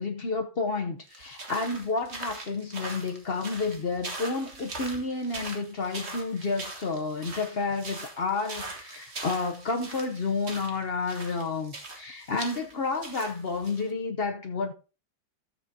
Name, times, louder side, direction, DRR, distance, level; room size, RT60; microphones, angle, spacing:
voice 1, 0.0-14.7, left 3 dB, 70° left, 0.5 m, -30 dB
sound 1, 1.1-13.9, right 2 dB, 35° right, 1.6 m, -41 dB
13.5 x 7.7 x 2.7 m
omnidirectional pair, 2.2 m